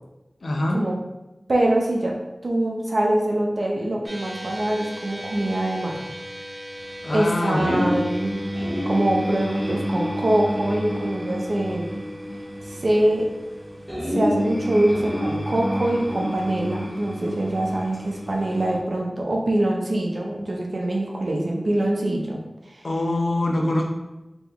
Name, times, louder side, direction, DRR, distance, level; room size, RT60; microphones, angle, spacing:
voice 1, 0.4-0.8 7.0-7.9 22.8-23.9, left 1 dB, 75° left, 1 dB, 0.6 m, -24 dB
voice 2, 1.5-6.0 7.1-8.3 8.8-12.0 12.7-13.3 14.0-22.4 22.7-22.8, right 1 dB, 65° right, -1 dB, 0.7 m, -24 dB
sound 1, 4.0-16.6, equal, 40° right, 1.0 m, -40 dB
sound 2, 7.5-18.8, equal, ahead, 1.4 m, -29 dB
3.5 x 3.0 x 3.5 m, 0.99 s
wide cardioid pair, 55°, 0 cm